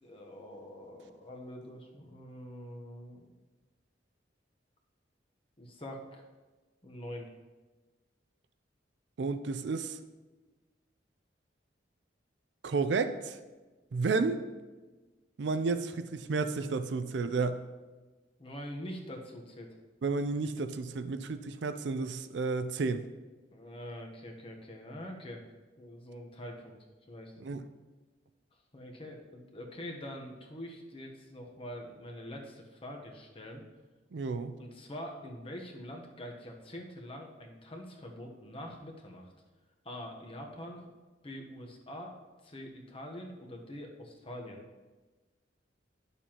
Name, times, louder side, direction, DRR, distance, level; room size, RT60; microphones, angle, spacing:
voice 1, 0.0-3.2 5.6-6.2 6.8-7.3 18.4-19.7 23.5-25.4 25.8-26.8 27.1-27.3 28.7-33.6 34.6-39.3 39.8-40.8 41.2-42.1 42.4-44.6, equal, 30° left, 1 dB, 1.0 m, -44 dB
voice 2, 9.2-10.0 12.6-13.4 13.9-14.4 15.4-17.6 20.0-23.1 27.4-27.6 34.1-34.6, right 4 dB, 70° right, 11 dB, 0.4 m, -31 dB
10.5 x 6.9 x 2.9 m, 1.3 s
head